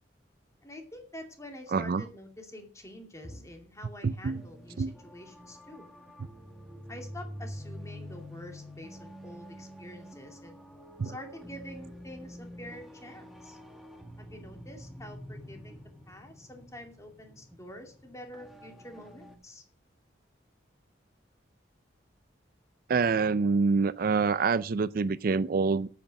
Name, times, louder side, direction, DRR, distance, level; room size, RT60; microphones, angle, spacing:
voice 1, 0.6-5.9 6.9-10.6 11.0-13.6 14.2-15.8 16.1-19.6, left 1 dB, 15° left, 2.5 m, -47 dB
voice 2, 1.7-2.0 4.0-4.4 4.8-4.9 11.0-11.1 22.9-25.9, right 4 dB, 50° right, 0.4 m, -26 dB
sound 1, 4.2-19.4, equal, ahead, 1.7 m, -47 dB
8.8 x 8.2 x 7.5 m
head